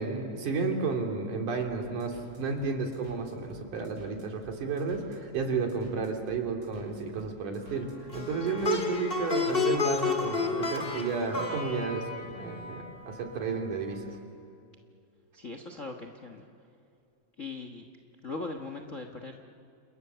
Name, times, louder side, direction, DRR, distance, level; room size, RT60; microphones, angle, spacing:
voice 1, 0.0-14.0, right 4 dB, 85° right, 2 dB, 4.3 m, -32 dB
sound 1, 2.0-8.9, right 1 dB, 45° right, 6.1 m, -51 dB
Plucked string instrument, 8.1-13.4, left 5 dB, 20° left, 1.7 m, -31 dB
voice 2, 15.3-16.5 17.4-17.8 18.2-19.4, left 3 dB, 45° left, 4 dB, 1.0 m, -39 dB
30.0 x 27.5 x 6.9 m, 2.6 s
omnidirectional pair, 3.5 m